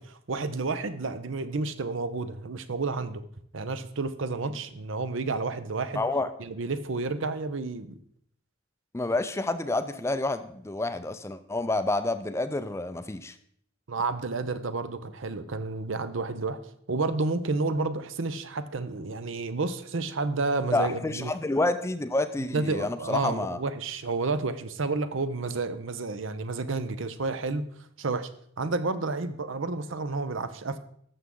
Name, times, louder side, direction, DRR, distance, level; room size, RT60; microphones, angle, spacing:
voice 1, 0.0-3.2 3.5-6.0 6.4-7.9 13.9-16.6 16.9-21.3 22.5-27.7 28.0-28.3 28.6-30.8, right 3 dB, 70° right, 12 dB, 0.7 m, -30 dB
voice 2, 6.0-6.3 8.9-13.3 20.7-23.6, left 2 dB, 15° left, 11 dB, 0.4 m, -28 dB
12.0 x 7.0 x 3.7 m, 0.67 s
head